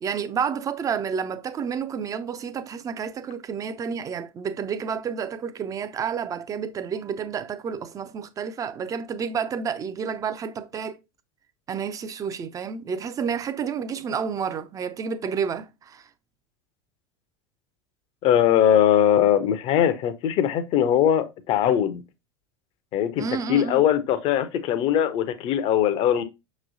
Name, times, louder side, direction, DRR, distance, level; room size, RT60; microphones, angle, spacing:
voice 1, 0.0-11.0 11.7-16.1 23.2-23.8, right 6 dB, 25° right, 0.5 m, -30 dB
voice 2, 18.2-22.0 22.9-26.2, left 10 dB, 45° left, 0.6 m, -21 dB
5.9 x 3.0 x 2.6 m
figure-of-eight pair, 80°, 13 cm